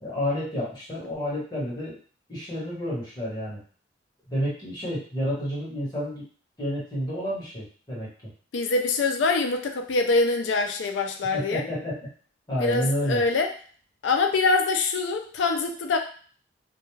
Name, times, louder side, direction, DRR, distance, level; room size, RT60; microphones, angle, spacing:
voice 1, 0.0-2.0 2.3-3.6 4.3-6.2 6.6-8.1 11.3-12.0 12.5-13.2, equal, 20° left, -7 dB, 1.1 m, -30 dB
voice 2, 8.5-11.6 12.6-13.5 14.0-16.0, left 3 dB, 85° left, 4 dB, 0.4 m, -24 dB
2.3 x 2.2 x 3.0 m, 0.43 s
head